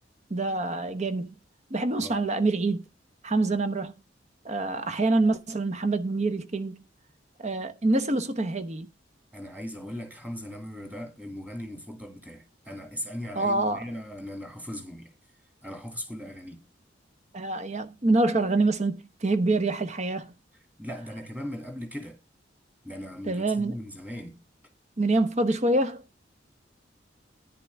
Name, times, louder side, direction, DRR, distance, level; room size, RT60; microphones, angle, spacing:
voice 1, 0.3-1.3 1.7-2.8 3.2-3.9 4.4-6.8 7.4-8.9 13.3-13.8 17.3-20.3 23.3-23.8 25.0-26.0, right 2 dB, 40° right, 0.9 m, -26 dB
voice 2, 9.3-15.1 15.6-16.6 20.8-22.2 22.8-24.4, equal, 10° right, 2.5 m, -38 dB
10.5 x 10.5 x 3.5 m
head